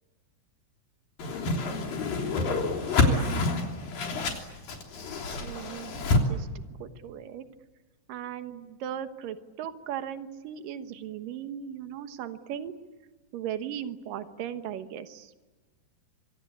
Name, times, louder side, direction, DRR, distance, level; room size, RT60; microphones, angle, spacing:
Whoosh swoosh swish, 1.2-6.2, left 3 dB, 80° left, 5.0 m, -27 dB
voice 1, 5.4-6.0 6.3-6.5 6.8-7.5 8.1-12.7 13.3-15.3, right 9 dB, 75° right, 9 dB, 3.0 m, -37 dB
26.0 x 25.5 x 8.7 m, 1.3 s
omnidirectional pair, 4.0 m